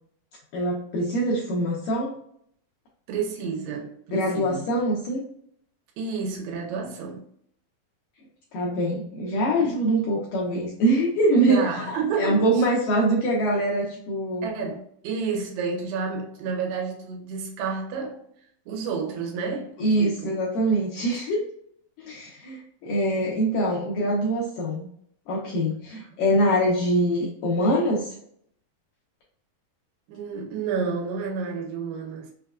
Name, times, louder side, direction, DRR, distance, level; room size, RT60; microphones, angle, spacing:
voice 1, 0.5-2.1 4.1-5.2 8.5-14.5 19.8-21.4 22.0-24.9 25.3-28.1, right 1 dB, 85° left, 1.9 m, -24 dB
voice 2, 3.1-4.6 6.0-7.3 9.6-9.8 11.4-12.6 14.4-18.3 18.7-20.3 30.1-32.3, right 5 dB, 90° right, 2.9 m, -30 dB
6.1 x 2.4 x 2.2 m
omnidirectional pair, 4.6 m